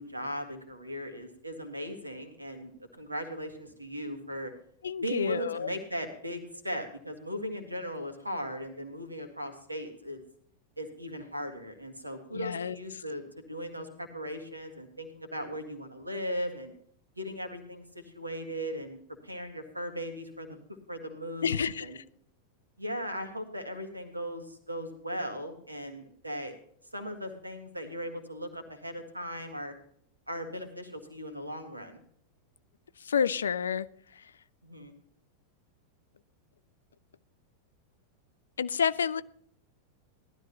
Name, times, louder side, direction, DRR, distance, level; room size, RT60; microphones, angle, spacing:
voice 1, 0.0-4.5 5.0-10.2 10.8-16.7 17.2-19.0 19.2-20.6 20.9-22.0 22.8-26.5 26.9-29.7 30.3-32.0 34.6-34.9, equal, 85° right, 1.8 m, -38 dB
voice 2, 4.8-5.7 12.3-12.8 21.4-21.9 33.1-33.9 38.6-39.2, left 7 dB, 70° left, 0.4 m, -29 dB
17.5 x 12.5 x 2.9 m
figure-of-eight pair, 90°, 0 cm